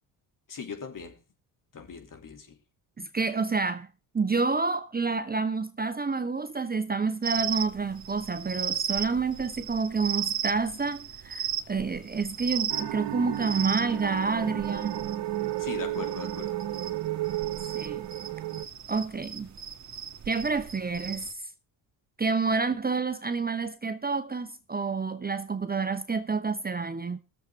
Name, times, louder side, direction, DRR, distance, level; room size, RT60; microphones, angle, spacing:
voice 1, 0.5-1.2 1.7-2.5 15.6-16.6, left 4 dB, 45° left, 3.0 m, -39 dB
voice 2, 3.0-3.9 4.1-15.0 17.6-18.1 18.9-19.5 20.3-21.5 22.2-27.2, right 4 dB, 20° right, 0.9 m, -29 dB
sound 1, 7.2-21.3, right 9 dB, 35° right, 1.9 m, -36 dB
sound 2, 12.7-18.7, right 13 dB, 60° right, 1.5 m, -33 dB
21.0 x 7.5 x 3.6 m
supercardioid pair, 70°, 46 cm